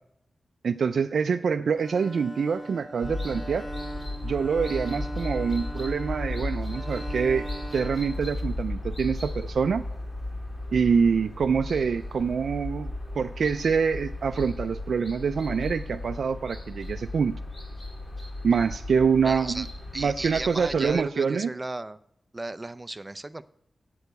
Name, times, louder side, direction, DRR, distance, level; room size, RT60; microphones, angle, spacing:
voice 1, 0.6-3.7 4.2-7.5 7.7-9.8 10.7-17.3 18.4-19.7 20.0-21.5, right 6 dB, 85° right, 8 dB, 0.3 m, -25 dB
Bowed string instrument, 1.7-8.9, right 1 dB, 5° left, 1.9 m, -40 dB
sound 1, 3.0-20.9, left 1 dB, 35° left, 2.9 m, -35 dB
voice 2, 19.2-19.7 19.9-22.0 22.3-23.4, right 2 dB, 20° right, 12 dB, 0.5 m, -35 dB
7.8 x 6.6 x 8.1 m, 0.73 s
wide cardioid pair, 85°, 0 cm